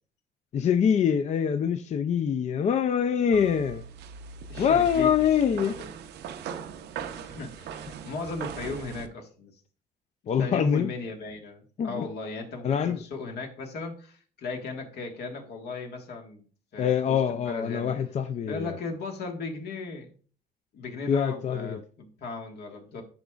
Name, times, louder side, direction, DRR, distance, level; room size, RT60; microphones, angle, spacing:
voice 1, 0.5-3.8 4.6-5.8 10.3-10.9 11.8-12.1 12.6-13.0 16.8-18.8 21.1-21.8, left 8 dB, 40° left, 0.4 m, -24 dB
sound 1, 3.3-9.1, right 6 dB, 75° right, 0.6 m, -40 dB
voice 2, 4.5-5.1 5.8-5.9 7.1-9.5 10.4-16.4 16.7-17.9 18.5-20.1 20.7-23.0, left 3 dB, 70° left, 1.6 m, -37 dB
10.5 x 5.0 x 2.4 m
cardioid pair, 135°, 17 cm